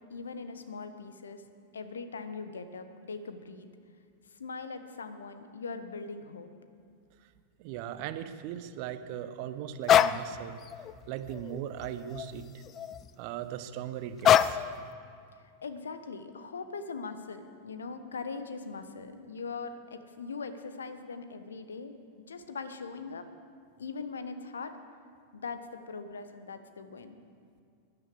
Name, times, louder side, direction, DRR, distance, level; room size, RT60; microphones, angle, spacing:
voice 1, 0.1-1.4 1.7-3.7 4.3-6.5 15.6-21.9 22.3-23.3 23.8-24.8 25.3-27.2, left 4 dB, 70° left, 10 dB, 1.1 m, -41 dB
voice 2, 7.6-10.6 11.1-12.6 13.2-14.6, right 10 dB, 45° right, 11 dB, 0.8 m, -38 dB
sound 1, 9.9-10.2 10.7-10.9 11.3-12.3 12.7-13.1 14.2-14.7, left 10 dB, 30° left, 0.4 m, -24 dB
12.5 x 11.0 x 7.8 m, 2.3 s
figure-of-eight pair, 90°, 0 cm